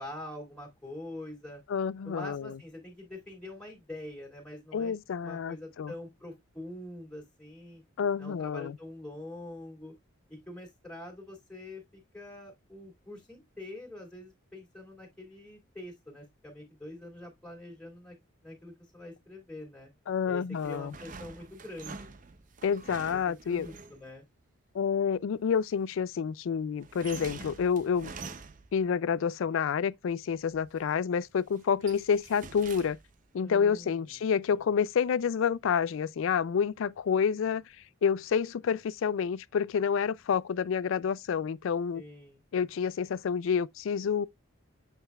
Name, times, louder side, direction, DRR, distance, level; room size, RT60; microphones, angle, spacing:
voice 1, 0.0-1.6 2.0-4.9 5.2-7.8 8.2-9.9 10.3-18.2 18.4-19.9 20.3-22.1 23.3-24.2 33.4-34.0 41.9-42.4, left 1 dB, 5° left, 2.3 m, -45 dB
voice 2, 1.7-2.6 4.7-5.9 8.0-8.7 20.1-20.9 22.6-23.7 24.7-28.1 28.7-33.0 33.3-37.6 38.0-42.0 42.5-44.3, left 7 dB, 70° left, 0.3 m, -29 dB
sound 1, 20.5-24.1 26.8-28.9 30.3-30.9 31.3-33.2, right 4 dB, 40° right, 0.6 m, -46 dB
7.6 x 5.5 x 2.3 m
head